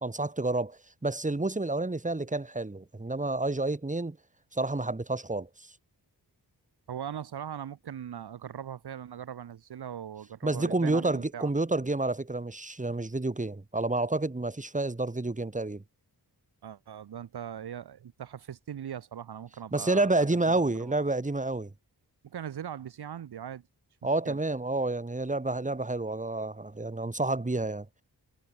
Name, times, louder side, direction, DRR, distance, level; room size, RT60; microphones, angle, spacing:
voice 1, 0.0-4.2 4.5-5.5 10.4-15.8 19.7-21.7 24.0-27.9, right 2 dB, 20° right, 2.6 m, -29 dB
voice 2, 6.9-11.5 16.6-21.1 22.2-23.6 24.2-24.4, right 9 dB, 70° right, 1.1 m, -40 dB
wide cardioid pair, 90°, 40 cm